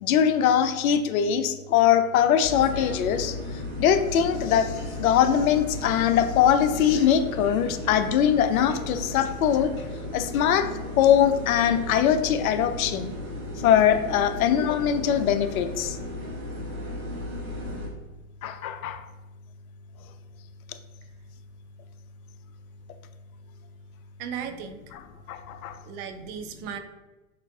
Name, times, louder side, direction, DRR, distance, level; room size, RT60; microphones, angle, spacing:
voice 1, 0.0-3.3 3.8-9.7 10.1-10.7 11.0-13.1 13.6-16.0 18.4-19.0 25.3-25.8, left 9 dB, 80° left, 10 dB, 0.5 m, -22 dB
sound 1, 2.4-17.9, left 1 dB, 85° right, 1.3 m, -35 dB
voice 2, 24.2-24.8 25.1-25.2 25.8-26.8, right 8 dB, 50° right, 7 dB, 0.5 m, -36 dB
6.6 x 2.4 x 2.3 m, 1.1 s
hypercardioid pair, 105°, 41 cm